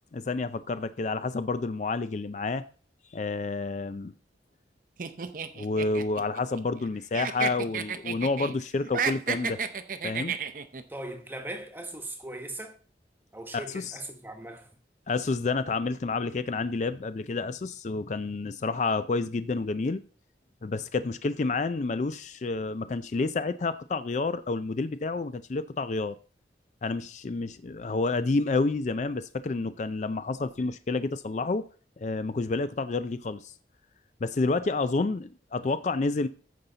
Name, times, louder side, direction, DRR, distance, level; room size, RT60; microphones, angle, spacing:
voice 1, 0.1-2.6 3.1-4.1 5.5-9.6 10.0-10.4 13.5-14.0 15.1-20.0 20.6-26.1 26.8-31.6 32.0-33.5 34.2-36.3, left 3 dB, 40° left, 0.4 m, -29 dB
sound 1, 5.0-6.9 7.1-8.5 8.8-10.8, right 6 dB, 50° right, 0.6 m, -32 dB
voice 2, 10.9-12.8 13.3-14.7, right 1 dB, 10° right, 1.1 m, -39 dB
14.5 x 5.6 x 3.9 m
head